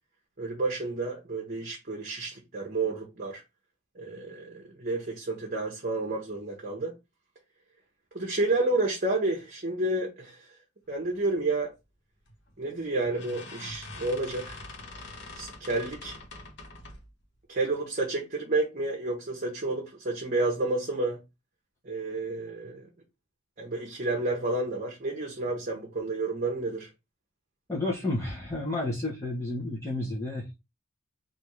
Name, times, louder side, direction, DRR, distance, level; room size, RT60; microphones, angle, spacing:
voice 1, 0.4-3.4 3.9-6.9 8.1-10.5 10.9-11.7 12.6-14.6 15.4-16.2 17.5-21.2 21.8-22.9 23.6-26.9, right 2 dB, 45° right, 0.9 m, -30 dB
sound 1, 12.3-12.5 13.0-17.1, left 2 dB, 60° left, 1.0 m, -44 dB
voice 2, 27.7-30.6, left 2 dB, 15° left, 1.0 m, -31 dB
3.5 x 2.7 x 4.5 m
head